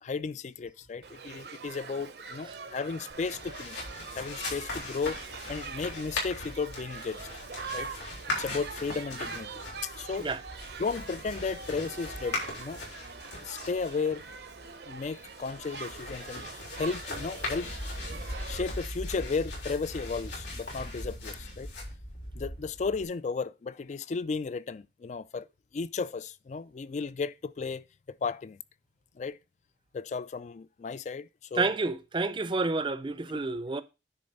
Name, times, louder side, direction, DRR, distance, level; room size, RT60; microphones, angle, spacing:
voice 1, 0.0-3.8 4.1-5.2 5.5-7.2 7.7-7.9 8.3-10.3 10.8-12.8 13.4-14.3 14.9-17.9 18.3-21.7 22.3-25.5 25.7-28.6 29.2-29.4 29.9-31.8, left 4 dB, 40° left, 0.3 m, -34 dB
Shout / Human group actions, 1.0-18.6, right 5 dB, 65° right, 0.8 m, -44 dB
sound 1, 3.1-23.0, left 2 dB, 85° left, 3.7 m, -39 dB
voice 2, 31.5-33.8, right 3 dB, 30° right, 0.5 m, -29 dB
9.9 x 3.9 x 5.3 m
head